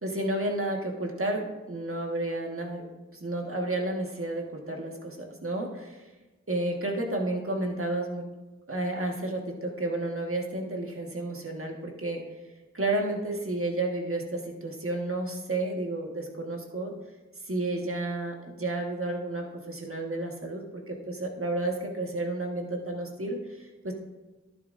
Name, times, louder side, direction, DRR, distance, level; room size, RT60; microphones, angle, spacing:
voice 1, 0.0-2.9 3.1-6.1 6.5-8.2 8.7-12.2 12.7-16.9 17.5-23.9, right 2 dB, 45° right, 1 dB, 1.6 m, -31 dB
11.0 x 10.0 x 2.6 m, 1.1 s
wide cardioid pair, 40°, 30 cm